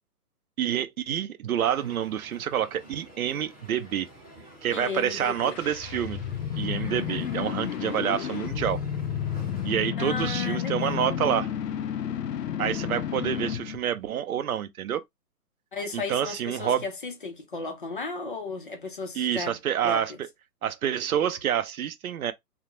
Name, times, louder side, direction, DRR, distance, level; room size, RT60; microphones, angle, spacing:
voice 1, 0.6-4.1 4.6-6.2 6.6-8.8 9.6-11.5 12.6-15.0 15.9-16.8 19.1-20.3 20.6-22.3, right 9 dB, 65° right, 0.6 m, -28 dB
Crowd, 1.6-9.9, right 1 dB, 5° right, 0.7 m, -49 dB
voice 2, 4.7-5.6 10.0-11.2 15.7-19.6 19.8-20.2, left 4 dB, 35° left, 0.4 m, -35 dB
sound 1, 5.2-13.8, left 9 dB, 80° left, 0.6 m, -31 dB
2.3 x 2.1 x 2.8 m
hypercardioid pair, 150°, 48 cm